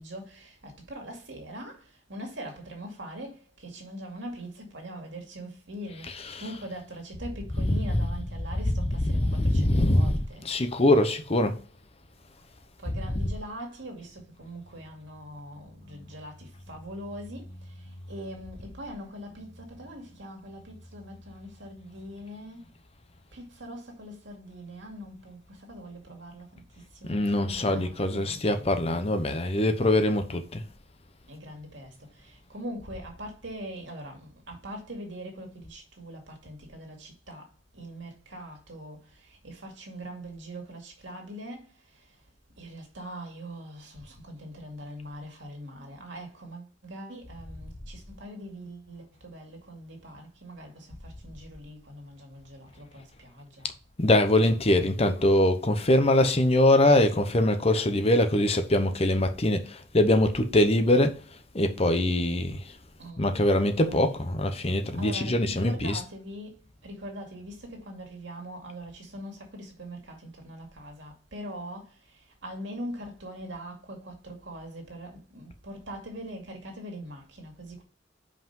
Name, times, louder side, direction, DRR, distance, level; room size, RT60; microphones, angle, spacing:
voice 1, 0.0-10.6 12.8-22.6 23.3-29.0 31.3-42.1 42.6-53.7 63.0-63.3 63.8-64.3 64.9-77.8, equal, 70° right, 2.3 m, -42 dB
voice 2, 6.0-6.5 7.5-7.8 8.7-11.6 27.0-30.6 54.0-61.2 61.5-62.6 63.2-66.0, left 1 dB, 30° left, 0.8 m, -23 dB
5.7 x 5.2 x 5.4 m
head